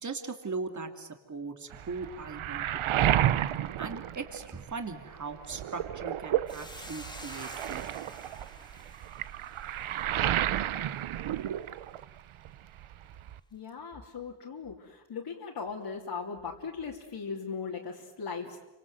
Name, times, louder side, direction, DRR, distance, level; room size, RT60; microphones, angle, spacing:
voice 1, 0.0-3.2 3.8-7.9, right 4 dB, 35° right, 6 dB, 2.8 m, -39 dB
Waves surf, 1.7-4.9 5.3-12.2 12.4-13.4, right 11 dB, 85° right, 0.9 m, -31 dB
Hiss, 6.5-11.0, left 1 dB, 10° left, 2.5 m, -49 dB
voice 2, 13.5-18.6, left 5 dB, 55° left, -2 dB, 3.1 m, -38 dB
30.0 x 25.0 x 8.0 m, 1.1 s
wide cardioid pair, 120°, 47 cm